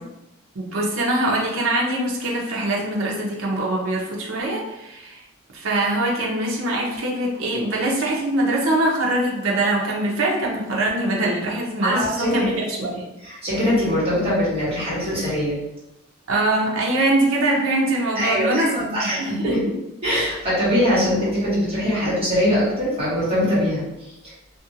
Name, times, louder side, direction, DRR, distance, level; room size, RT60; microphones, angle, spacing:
voice 1, 0.5-5.2 5.5-13.0 16.3-19.7, right 1 dB, 70° right, -2 dB, 0.6 m, -23 dB
voice 2, 11.8-12.6 13.2-15.6 18.1-19.6 20.0-24.1, equal, 25° right, -9 dB, 1.3 m, -22 dB
2.8 x 2.5 x 2.7 m, 0.92 s
head